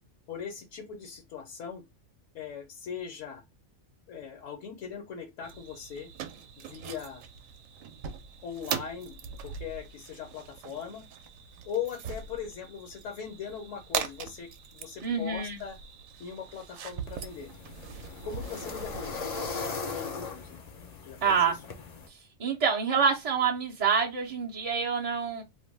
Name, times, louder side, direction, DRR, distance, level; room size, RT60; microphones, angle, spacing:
voice 1, 0.3-1.8 2.3-3.4 4.1-6.1 6.7-7.2 8.4-11.1 11.6-15.8 16.2-17.5 18.2-20.6 21.0-21.6, left 7 dB, 75° left, 1.0 m, -40 dB
sound 1, 5.4-19.6, right 7 dB, 75° right, 0.9 m, -41 dB
voice 2, 15.0-15.6 21.2-21.5 22.1-25.4, right 6 dB, 55° right, 0.4 m, -27 dB
sound 2, 17.1-22.1, left 4 dB, 55° left, 0.4 m, -39 dB
2.5 x 2.1 x 3.1 m
omnidirectional pair, 1.4 m